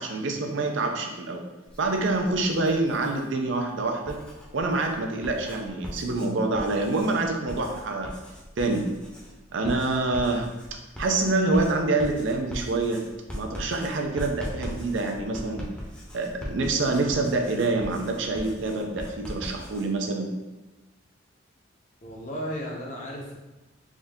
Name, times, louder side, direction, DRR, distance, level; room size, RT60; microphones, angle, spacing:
voice 1, 0.0-1.4 1.8-4.2 4.5-8.1 8.6-8.9 9.5-10.5 11.0-13.0 13.3-15.7 16.1-20.3, right 2 dB, 70° right, 3 dB, 0.5 m, -26 dB
Writing, 1.6-3.3 3.9-19.9, equal, 5° left, 0.7 m, -40 dB
voice 2, 22.0-23.4, equal, 40° left, -1 dB, 0.8 m, -34 dB
3.6 x 2.7 x 3.5 m, 1.1 s
head